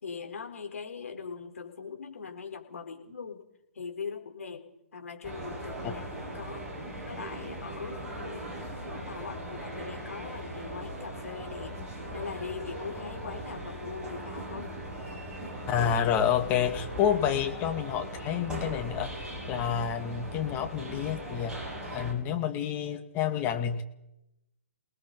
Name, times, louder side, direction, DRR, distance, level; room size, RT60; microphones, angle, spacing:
voice 1, 0.0-3.4 3.7-4.6 4.9-6.0 6.3-6.7 7.1-8.5 8.9-11.7 12.1-14.7, left 5 dB, 65° left, 4 dB, 4.6 m, -41 dB
sound 1, 5.2-22.1, right 1 dB, 10° right, 6.7 m, -39 dB
voice 2, 15.7-21.5 21.9-23.8, left 9 dB, 25° left, 5 dB, 2.2 m, -29 dB
29.5 x 19.5 x 5.2 m, 0.89 s
figure-of-eight pair, 135°, 8 cm